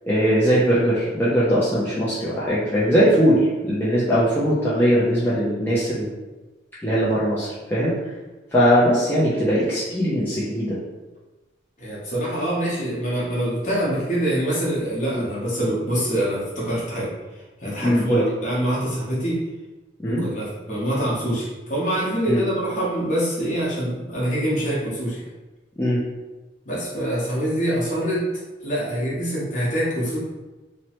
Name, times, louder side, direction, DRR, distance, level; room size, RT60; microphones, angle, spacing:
voice 1, 0.0-6.1 6.8-8.0 8.5-10.8 15.1-15.2 17.8-18.2 20.0-20.2 22.3-22.4 25.8-26.0, equal, 10° left, -10 dB, 0.4 m, -20 dB
voice 2, 11.8-19.4 20.1-25.2 26.7-28.3 28.6-30.2, right 1 dB, 40° left, -6 dB, 0.9 m, -25 dB
3.0 x 2.0 x 2.9 m, 1.1 s
head